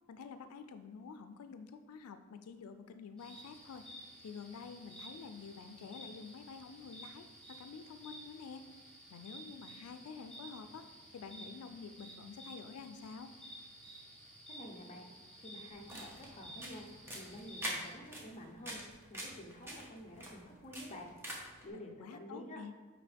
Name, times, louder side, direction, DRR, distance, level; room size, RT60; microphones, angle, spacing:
voice 1, 0.1-3.9 4.2-8.6 9.1-10.9 11.1-13.3 21.9-22.7, left 5 dB, 90° left, 9 dB, 0.4 m, -49 dB
sound 1, 3.2-17.9, right 1 dB, 5° left, 2.0 m, -53 dB
voice 2, 14.5-15.1 15.4-16.9 17.1-18.8 19.1-21.1 21.6-22.6, left 1 dB, 30° left, 1 dB, 0.8 m, -49 dB
sound 2, 15.7-21.6, equal, 10° right, 1.1 m, -46 dB
9.8 x 3.6 x 3.4 m, 1.4 s
head